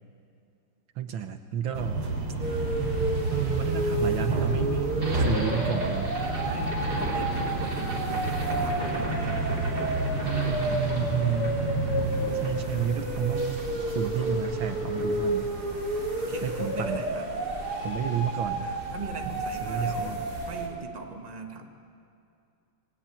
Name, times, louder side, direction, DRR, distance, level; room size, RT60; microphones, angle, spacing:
voice 1, 1.0-2.1 3.3-6.1 10.2-11.9 12.4-13.7 14.0-15.5 16.4-17.0 17.8-18.7 19.6-20.2, right 9 dB, 65° right, 8 dB, 1.7 m, -31 dB
sound 1, 1.7-15.4, right 2 dB, 85° right, 4.0 m, -32 dB
sound 2, 2.4-20.7, right 1 dB, 45° right, 4.0 m, -30 dB
voice 2, 6.1-9.4 10.2-10.9 16.2-17.3 18.4-20.2 20.5-21.7, right 3 dB, 20° right, 3 dB, 1.5 m, -41 dB
26.5 x 19.5 x 9.2 m, 2.5 s
omnidirectional pair, 2.4 m